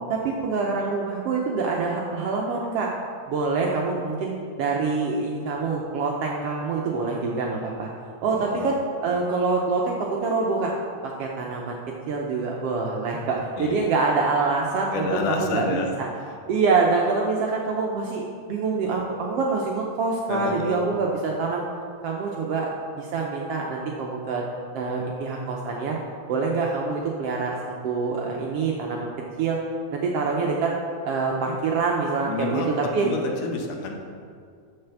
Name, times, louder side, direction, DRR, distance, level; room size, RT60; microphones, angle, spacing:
voice 1, 0.1-2.9 3.3-7.9 8.2-10.7 11.0-11.8 12.1-16.1 16.5-21.6 22.0-22.7 23.0-24.4 24.7-26.0 26.3-29.1 29.4-29.6 29.9-30.7 31.0-32.6 32.9-33.1, right 4 dB, 75° right, -1 dB, 1.4 m, -25 dB
voice 2, 8.3-8.7 13.6-13.9 14.9-15.9 16.2-16.3 20.3-20.8 32.3-33.9, left 4 dB, 90° left, 3 dB, 2.5 m, -29 dB
6.8 x 6.4 x 7.0 m, 2.2 s
omnidirectional pair, 3.5 m